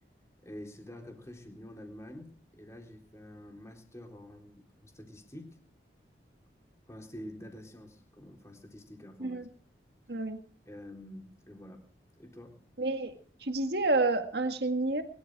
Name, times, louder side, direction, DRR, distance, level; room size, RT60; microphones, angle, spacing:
voice 1, 0.4-2.3 2.6-5.6 6.9-9.4 10.7-11.8 12.2-12.6, left 1 dB, 15° left, 2 dB, 3.8 m, -47 dB
voice 2, 12.8-13.1 13.4-15.0, right 2 dB, 60° right, 6 dB, 1.9 m, -29 dB
22.0 x 13.0 x 4.8 m, 0.44 s
head